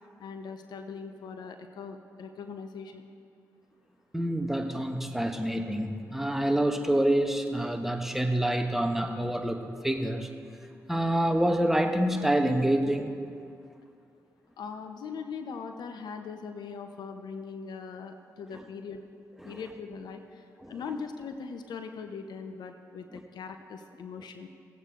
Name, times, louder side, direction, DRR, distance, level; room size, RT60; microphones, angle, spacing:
voice 1, 0.2-3.1 14.6-19.0 19.4-24.5, left 5 dB, 70° left, 7 dB, 0.8 m, -40 dB
voice 2, 4.1-10.3 10.9-13.1 18.5-18.6 19.4-19.6 20.6-20.7, right 1 dB, 5° right, 5 dB, 1.2 m, -27 dB
17.5 x 8.1 x 3.8 m, 2.4 s
hypercardioid pair, 45°, 7 cm